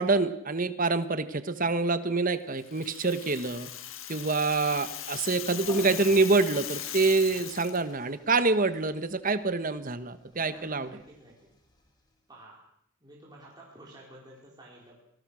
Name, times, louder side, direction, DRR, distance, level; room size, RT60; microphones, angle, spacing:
voice 1, 0.0-3.7 4.1-10.9, right 3 dB, 40° right, 11 dB, 1.4 m, -26 dB
Rattle (instrument), 2.6-7.8, left 11 dB, 75° left, 1.9 m, -39 dB
sound 1, 5.4-12.1, left 1 dB, 20° left, 3.7 m, -51 dB
voice 2, 10.3-11.5 12.3-12.6 13.0-15.0, right 1 dB, 20° right, -4 dB, 4.6 m, -51 dB
26.0 x 18.5 x 6.4 m, 0.72 s
head